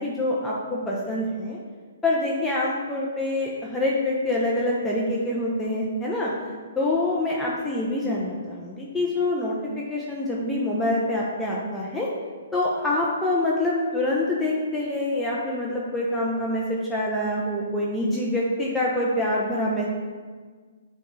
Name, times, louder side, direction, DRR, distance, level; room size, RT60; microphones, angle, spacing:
voice 1, 0.0-1.6 2.0-6.3 6.8-12.1 12.5-19.9, left 1 dB, 5° left, -5 dB, 0.5 m, -26 dB
7.0 x 2.3 x 3.1 m, 1.5 s
hypercardioid pair, 135°, 0 cm